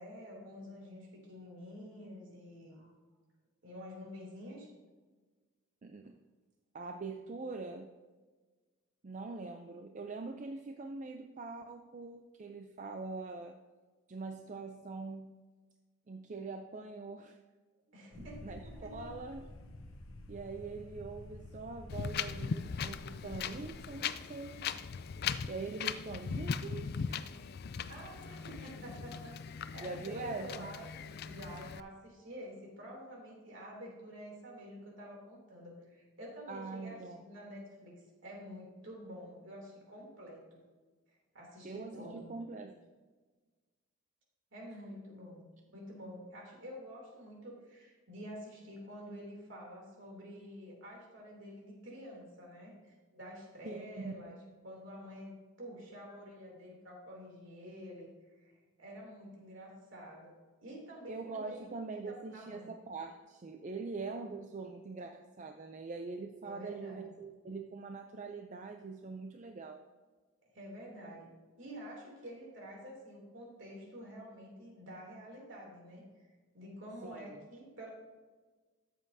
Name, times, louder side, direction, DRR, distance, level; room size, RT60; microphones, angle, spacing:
voice 1, 0.0-2.9 3.6-4.7 17.9-19.1 27.9-37.9 38.2-40.6 41.1-42.4 44.5-45.5 45.7-54.4 54.6-58.1 58.4-60.3 60.6-62.7 66.4-67.1 70.5-71.3 71.6-77.9, equal, 60° right, -2 dB, 2.9 m, -49 dB
voice 2, 5.8-6.2 6.7-7.9 9.0-13.5 14.1-15.4 16.1-17.4 18.4-19.5 20.3-24.6 25.5-27.3 29.8-30.7 36.5-37.2 41.6-42.8 53.6-54.1 61.1-69.8 77.0-77.4, right 3 dB, 35° right, 5 dB, 0.4 m, -43 dB
sound 1, 18.1-23.9, left 1 dB, 85° left, 1.0 m, -50 dB
Wind, 21.9-31.8, left 6 dB, 50° left, 0.3 m, -39 dB
13.5 x 7.6 x 2.7 m, 1.4 s
head